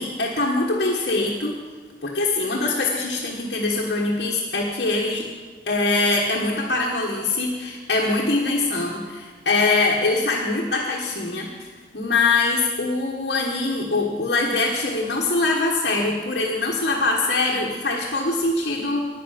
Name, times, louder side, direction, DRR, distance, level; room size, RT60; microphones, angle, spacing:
voice 1, 0.0-1.6 2.0-5.3 5.7-11.5 11.9-19.1, left 3 dB, 60° left, -3 dB, 1.5 m, -23 dB
10.5 x 9.5 x 5.8 m, 1.4 s
head